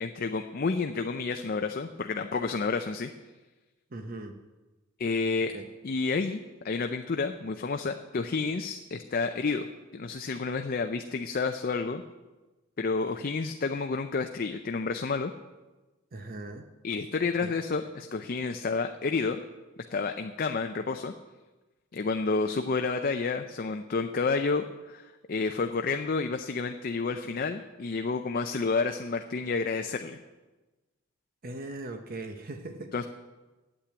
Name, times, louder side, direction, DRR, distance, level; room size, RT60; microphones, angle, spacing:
voice 1, 0.0-3.1 5.0-5.5 5.8-6.4 6.6-9.7 9.9-12.0 12.8-15.3 16.8-19.4 19.9-21.1 21.9-30.2 32.9-33.0, left 4 dB, 45° left, 6 dB, 0.5 m, -30 dB
voice 2, 3.9-4.4 5.5-5.7 16.1-16.6 17.4-17.6 31.4-33.0, right 2 dB, 45° right, 7 dB, 0.7 m, -39 dB
8.8 x 8.3 x 8.9 m, 1.2 s
head